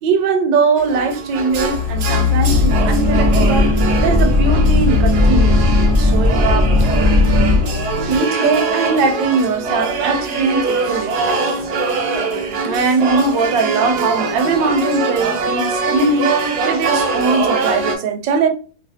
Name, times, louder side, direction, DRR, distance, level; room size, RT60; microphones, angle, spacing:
voice 1, 0.0-3.7 4.0-6.9 8.0-11.6 12.6-16.3 16.7-18.5, right 4 dB, 85° right, 1.3 m, -20 dB
sound 1, 0.8-18.0, right 3 dB, 70° right, 1.1 m, -23 dB
sound 2, 1.5-8.2, left 8 dB, 25° left, 0.8 m, -23 dB
sound 3, 2.5-7.6, left 1 dB, 15° right, 0.7 m, -15 dB
3.1 x 2.6 x 2.7 m
omnidirectional pair, 1.9 m